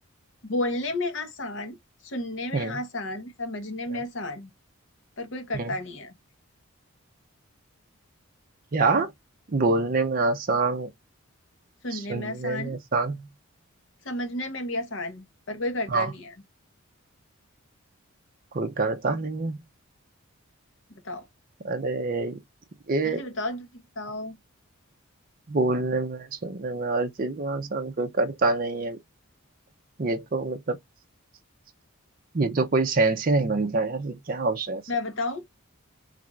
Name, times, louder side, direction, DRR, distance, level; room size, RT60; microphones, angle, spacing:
voice 1, 0.4-1.8 2.0-4.5 5.2-6.1 11.8-12.8 14.0-16.3 21.0-21.3 23.0-24.4 34.9-35.4, left 2 dB, 55° left, 0.9 m, -32 dB
voice 2, 8.7-9.1 9.5-10.9 11.9-13.3 15.9-16.1 18.5-19.6 21.6-22.4 22.9-23.2 25.5-29.0 30.0-30.8 32.3-34.8, right 3 dB, 40° right, 0.5 m, -26 dB
3.3 x 2.4 x 3.0 m
head